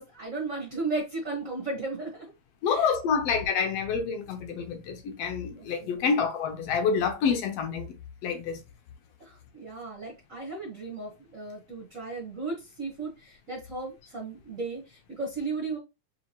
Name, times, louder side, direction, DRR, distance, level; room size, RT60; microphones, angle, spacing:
voice 1, 0.0-2.3 2.7-3.2 5.5-6.1 9.2-15.8, right 3 dB, 65° right, 0.7 m, -35 dB
voice 2, 2.6-7.9 8.2-8.6, left 6 dB, 75° left, 1.5 m, -27 dB
5.0 x 2.9 x 2.8 m
omnidirectional pair, 3.4 m